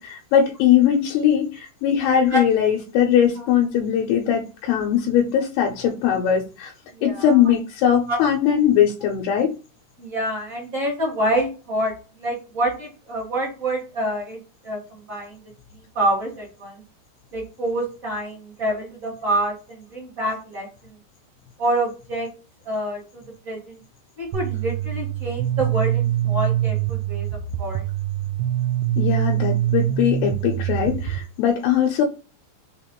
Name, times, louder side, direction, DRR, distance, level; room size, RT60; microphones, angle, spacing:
voice 1, 0.0-6.7 7.0-9.5 29.0-32.0, left 9 dB, 80° left, 1 dB, 2.6 m, -20 dB
voice 2, 7.0-7.4 8.1-8.2 10.0-11.9 12.2-14.4 14.6-15.4 15.9-16.7 17.3-20.7 21.6-22.3 22.6-23.8 24.2-27.3 27.6-27.8, right 1 dB, 35° right, -6 dB, 1.3 m, -26 dB
sound 1, 24.3-31.2, right 12 dB, 80° right, 2.4 m, -24 dB
6.3 x 2.5 x 2.9 m, 0.33 s
omnidirectional pair, 4.7 m